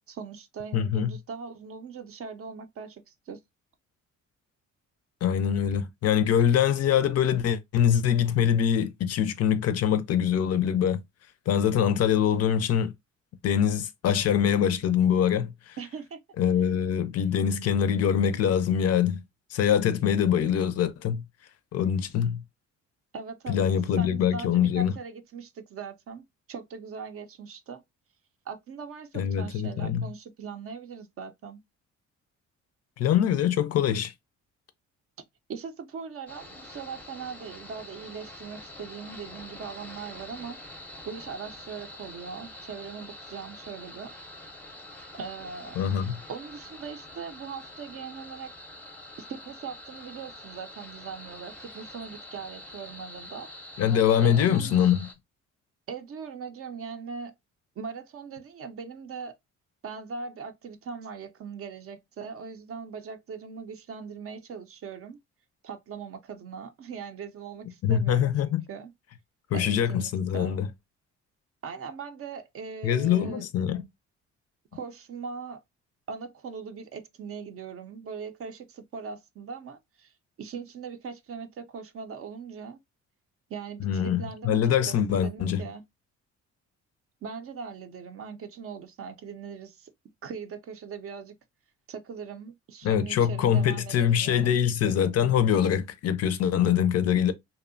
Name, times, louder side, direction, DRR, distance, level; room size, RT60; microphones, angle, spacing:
voice 1, 0.1-3.4 15.8-16.2 23.1-23.7 24.0-27.8 28.5-31.6 35.5-40.6 41.0-44.1 45.1-48.5 49.3-53.5 54.2-54.9 55.9-57.3 57.8-59.4 59.8-65.2 65.6-68.9 69.5-70.6 71.6-73.5 74.7-75.6 76.1-82.8 83.5-84.6 84.9-85.8 87.2-89.9 90.2-91.3 91.9-94.6, right 6 dB, 50° right, 0.5 m, -40 dB
voice 2, 0.7-1.1 5.2-11.0 11.5-12.9 13.4-15.8 16.4-19.2 19.5-21.2 21.7-22.4 23.5-24.9 29.1-30.1 33.0-34.1 45.8-46.2 53.8-55.1 67.8-68.6 69.5-70.7 72.8-73.8 83.8-85.6 92.8-97.3, left 9 dB, 55° left, 0.4 m, -24 dB
sound 1, 36.3-55.1, left 1 dB, 5° left, 0.5 m, -45 dB
2.6 x 2.1 x 2.5 m
cardioid pair, 90°, 30 cm